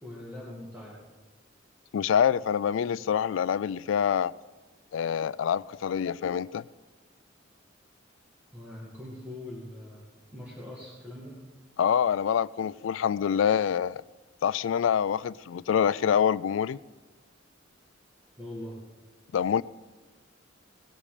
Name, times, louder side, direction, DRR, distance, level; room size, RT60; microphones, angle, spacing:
voice 1, 0.0-1.0 8.5-10.0 10.3-11.3 18.4-18.8, left 1 dB, 10° right, -6 dB, 2.1 m, -42 dB
voice 2, 1.9-4.3 4.9-6.6 11.8-14.0 14.4-16.8 19.3-19.6, left 8 dB, 80° left, 20 dB, 0.3 m, -26 dB
18.5 x 8.6 x 5.0 m, 1.3 s
head